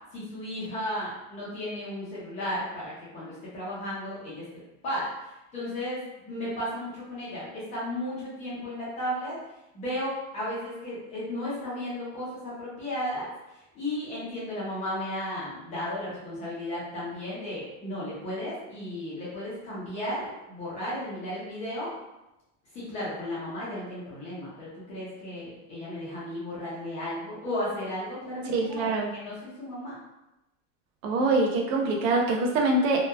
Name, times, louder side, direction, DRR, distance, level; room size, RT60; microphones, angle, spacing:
voice 1, 0.1-4.4 4.8-9.4 9.7-13.3 13.7-21.9 22.7-29.9, left 1 dB, 20° left, -8 dB, 0.5 m, -34 dB
voice 2, 28.5-29.1 31.0-33.0, right 2 dB, 80° right, 1 dB, 0.6 m, -24 dB
2.9 x 2.2 x 2.2 m, 0.96 s
supercardioid pair, 175°, 38 cm